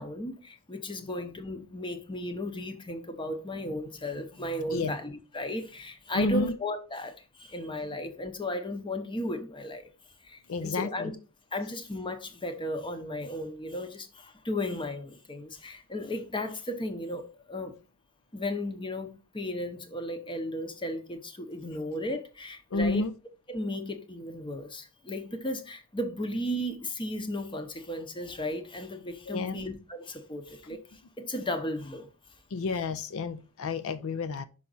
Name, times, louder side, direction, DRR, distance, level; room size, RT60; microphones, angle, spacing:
voice 1, 0.0-9.9 10.2-11.2 11.5-17.8 18.3-23.1 23.5-30.8 31.2-32.1, left 1 dB, 20° left, 0.8 m, -35 dB
voice 2, 6.1-6.5 10.5-11.1 22.7-23.1 29.3-29.6 32.5-34.4, left 3 dB, 65° left, 0.5 m, -30 dB
5.7 x 4.9 x 3.9 m
head